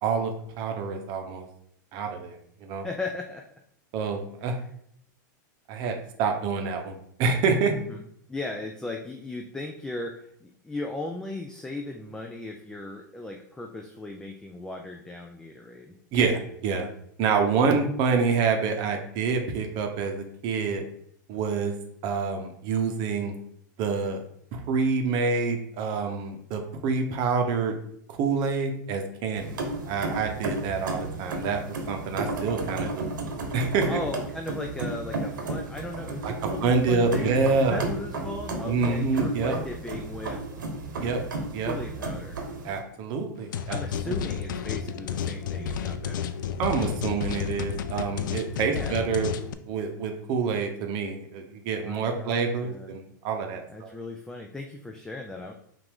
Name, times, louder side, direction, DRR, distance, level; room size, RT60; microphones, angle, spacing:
voice 1, 0.0-1.5 1.9-2.9 3.9-4.5 5.7-7.7 16.1-16.9 17.2-20.8 21.3-21.7 22.0-23.3 23.8-24.2 24.5-27.7 28.1-29.6 29.9-31.6 31.9-33.1 33.5-34.0 36.2-36.3 36.6-37.8 38.7-39.6 41.0-41.2 41.5-41.7 42.6-43.8 44.1-44.2 46.6-49.3 49.7-53.9, right 5 dB, 45° right, 4 dB, 0.8 m, -27 dB
voice 2, 2.8-3.4 4.4-4.7 7.7-16.0 33.9-37.3 37.6-40.4 41.6-42.4 43.7-46.3 48.6-49.1 51.8-52.9 53.7-55.5, left 2 dB, 5° left, 2 dB, 0.3 m, -37 dB
sound 1, 29.4-42.8, right 2 dB, 85° right, 1.0 m, -33 dB
sound 2, 43.5-49.5, left 7 dB, 80° left, 0.4 m, -31 dB
5.6 x 2.6 x 3.5 m, 0.69 s
hypercardioid pair, 130°, 10 cm